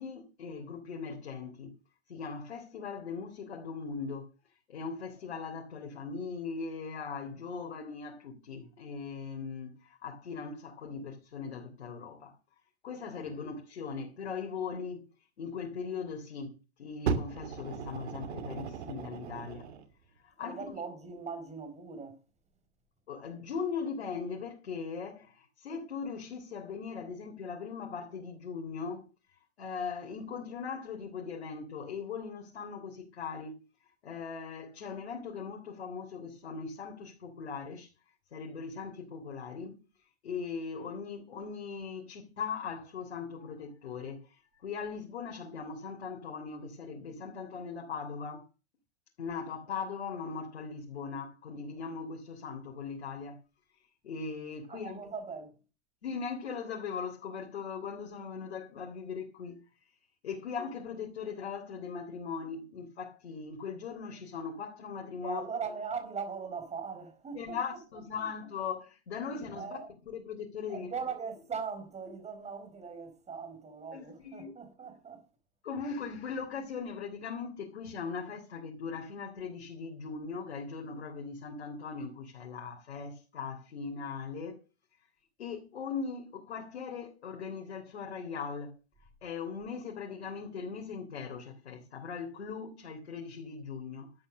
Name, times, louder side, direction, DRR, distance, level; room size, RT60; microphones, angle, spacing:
voice 1, 0.0-1.7 2.1-4.3 4.7-12.4 12.8-15.1 15.4-19.7 20.2-20.7 23.1-29.1 29.6-33.6 34.0-37.9 38.3-39.8 40.2-48.4 49.2-53.4 54.0-55.0 56.0-59.6 60.2-65.4 67.3-69.8 70.1-70.9 73.9-74.5 75.6-84.6 85.4-88.8 89.2-94.1, left 5 dB, 80° left, 3.5 m, -39 dB
Fire, 17.1-19.9 20.7-20.8, right 6 dB, 75° right, 2.6 m, -36 dB
voice 2, 20.4-22.2 54.7-55.5 65.2-67.6 68.2-68.3 69.5-69.9 70.7-75.2, right 5 dB, 20° right, 4.7 m, -40 dB
13.0 x 8.7 x 6.6 m
hypercardioid pair, 110°, 32 cm